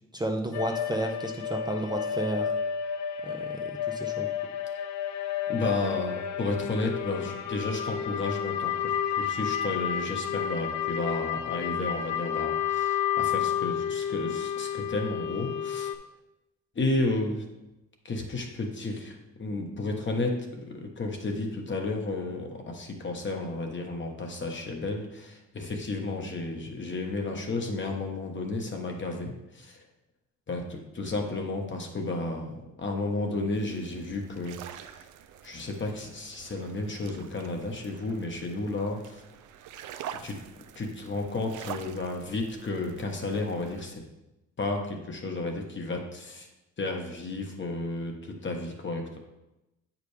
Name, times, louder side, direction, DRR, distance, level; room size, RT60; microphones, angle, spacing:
voice 1, 0.1-2.5 3.2-4.3, right 1 dB, 15° right, 2 dB, 0.6 m, -32 dB
sound 1, 0.5-15.9, left 8 dB, 70° left, 0.5 m, -31 dB
voice 2, 5.5-15.9 16.7-17.4 18.0-29.8 30.5-34.9 35.4-39.2 40.2-40.4 40.7-44.0 44.6-46.5 46.8-49.2, left 2 dB, 40° left, 2 dB, 1.3 m, -32 dB
sound 2, 33.5-43.9, right 9 dB, 80° right, 0.5 m, -46 dB
8.1 x 5.1 x 3.3 m, 0.96 s
cardioid pair, 90°, 30 cm